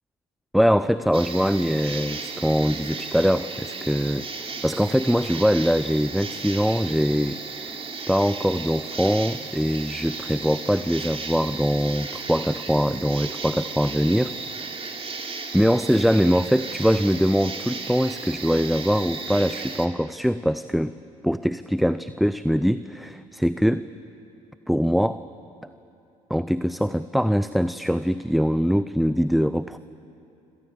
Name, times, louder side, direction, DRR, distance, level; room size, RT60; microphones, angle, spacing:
voice 1, 0.5-7.8 8.1-14.3 15.5-20.9 21.2-23.9 24.7-25.2 26.3-29.8, equal, ahead, 13 dB, 0.7 m, -22 dB
sound 1, 1.1-19.9, right 4 dB, 35° right, 3.3 m, -35 dB
26.5 x 26.5 x 7.7 m, 2.8 s
hypercardioid pair, 60°, 18 cm